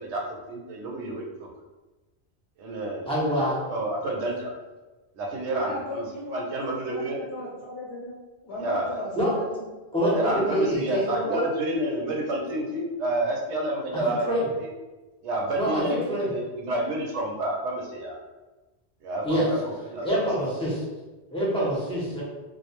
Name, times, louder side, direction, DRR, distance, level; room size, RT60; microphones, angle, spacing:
voice 1, 0.0-1.5 2.6-3.4 3.7-4.5 5.1-6.0 6.3-7.2 8.6-9.0 10.1-14.7 15.2-18.2 19.0-20.3 21.5-21.7, right 1 dB, 90° right, 0 dB, 0.9 m, -29 dB
voice 2, 3.1-3.6 9.2-9.3 9.9-11.4 14.3-14.5 15.6-16.3 19.2-19.5 20.0-20.8 21.3-22.2, equal, 5° left, -8 dB, 0.5 m, -25 dB
voice 3, 5.3-8.2 8.4-9.6, left 1 dB, 70° left, -7 dB, 0.9 m, -37 dB
2.2 x 2.0 x 2.9 m, 1.2 s
omnidirectional pair, 1.1 m